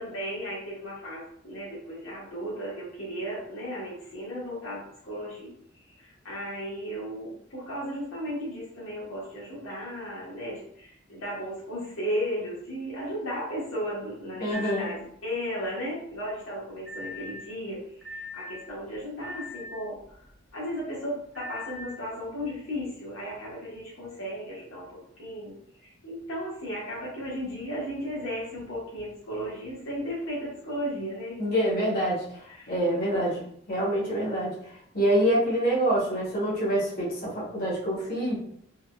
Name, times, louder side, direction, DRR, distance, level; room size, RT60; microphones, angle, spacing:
voice 1, 0.0-5.5 5.9-20.2 20.5-31.4 32.5-32.7 33.1-33.4, equal, 90° left, -6 dB, 1.0 m, -35 dB
voice 2, 14.4-14.9 31.4-32.2 32.7-33.4 33.7-34.5 34.9-38.4, right 1 dB, 45° left, -7 dB, 1.1 m, -26 dB
sound 1, 14.5-14.9 16.9-17.4 18.0-18.5 19.2-19.7 21.4-21.8, left 2 dB, ahead, 0.5 m, -39 dB
3.5 x 2.0 x 2.3 m, 0.66 s
head